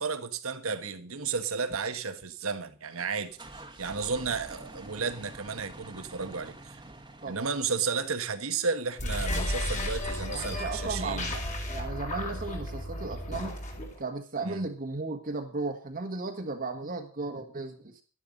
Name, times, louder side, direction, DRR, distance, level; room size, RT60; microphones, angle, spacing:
voice 1, 0.0-3.4 3.8-6.8 7.3-11.3 14.4-14.6, right 5 dB, 75° right, 1.5 m, -33 dB
sound 1, 2.9-8.5, right 2 dB, 20° right, 1.6 m, -47 dB
sound 2, 8.9-14.0, left 1 dB, 35° left, 4.0 m, -33 dB
voice 2, 10.3-13.5 14.0-18.0, right 3 dB, 45° right, 1.6 m, -35 dB
12.0 x 11.5 x 5.3 m
head